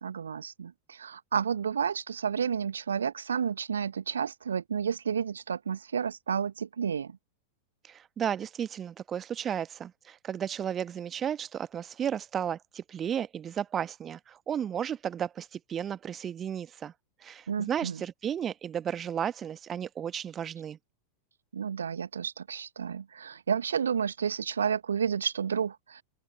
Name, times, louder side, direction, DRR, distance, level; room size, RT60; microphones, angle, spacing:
voice 1, 0.0-7.2 17.5-18.0 21.5-26.0, right 7 dB, 70° right, 1.2 m, -31 dB
voice 2, 7.8-16.9 17.2-20.8, right 9 dB, 25° right, 1.2 m, -34 dB
figure-of-eight pair, 90°, 0 cm